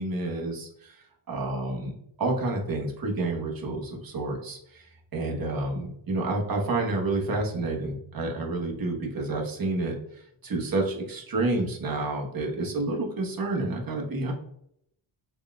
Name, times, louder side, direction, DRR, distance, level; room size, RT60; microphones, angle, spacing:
voice 1, 0.0-1.9 2.2-4.9 5.1-14.3, right 2 dB, 45° right, 0 dB, 1.0 m, -29 dB
4.1 x 3.6 x 2.2 m, 0.71 s
wide cardioid pair, 140°, 50 cm